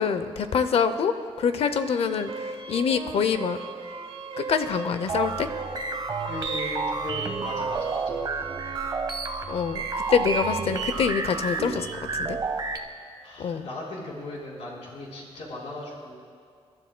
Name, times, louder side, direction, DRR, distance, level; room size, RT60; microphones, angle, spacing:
voice 1, 0.0-3.6 4.4-5.5 9.5-11.9 12.1-12.4 13.4-13.7, left 6 dB, 65° left, 10 dB, 0.6 m, -25 dB
sound 1, 1.6-11.6, right 4 dB, 65° right, 1.0 m, -38 dB
sound 2, 5.1-12.8, right 4 dB, 40° right, 0.9 m, -30 dB
voice 2, 6.2-8.3 13.2-16.2, left 2 dB, 85° left, -4 dB, 3.7 m, -37 dB
30.0 x 12.5 x 2.2 m, 2.2 s
wide cardioid pair, 160°, 11 cm